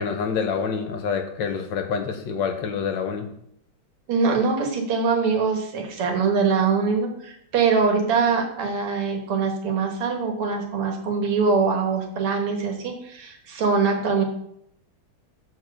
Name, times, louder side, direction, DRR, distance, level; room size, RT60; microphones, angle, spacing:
voice 1, 0.0-3.3, left 6 dB, 65° left, 6 dB, 1.3 m, -27 dB
voice 2, 4.1-14.2, right 5 dB, 85° right, 3 dB, 2.3 m, -23 dB
6.9 x 4.4 x 6.4 m, 0.72 s
omnidirectional pair, 2.4 m